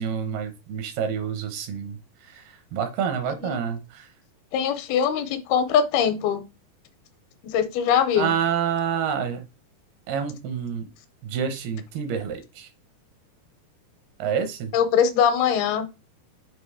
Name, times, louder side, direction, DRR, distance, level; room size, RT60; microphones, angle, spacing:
voice 1, 0.0-2.0 2.3-2.4 2.7-4.1 8.2-9.4 10.1-10.9 11.2-12.7 14.2-14.7, right 7 dB, 80° right, 8 dB, 2.9 m, -28 dB
voice 2, 4.5-6.4 7.4-8.3 14.7-15.9, left 8 dB, 80° left, 9 dB, 2.5 m, -22 dB
7.6 x 2.9 x 4.9 m, 0.26 s
omnidirectional pair, 4.6 m